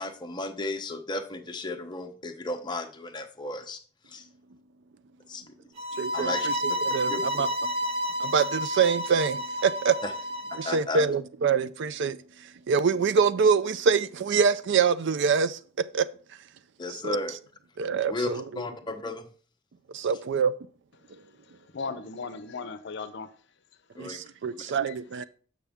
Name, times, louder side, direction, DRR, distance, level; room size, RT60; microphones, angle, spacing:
voice 1, 0.0-3.8 4.1-4.3 5.3-5.7 6.1-6.5 7.1-7.4 10.0-10.1 10.5-11.0 16.8-17.3 18.1-19.3 24.0-24.2, left 2 dB, 20° left, 0.7 m, -34 dB
sound 1, 5.8-10.8, equal, 30° right, 0.7 m, -30 dB
voice 2, 5.9-7.5 8.2-9.9 10.6-12.2 12.7-15.6 15.9-16.1 17.0-17.2 17.8-18.4 19.9-20.5 24.0-25.2, right 6 dB, 60° right, 0.4 m, -25 dB
voice 3, 21.7-23.3 24.6-24.9, left 4 dB, 60° left, 0.7 m, -37 dB
6.9 x 6.1 x 3.5 m
head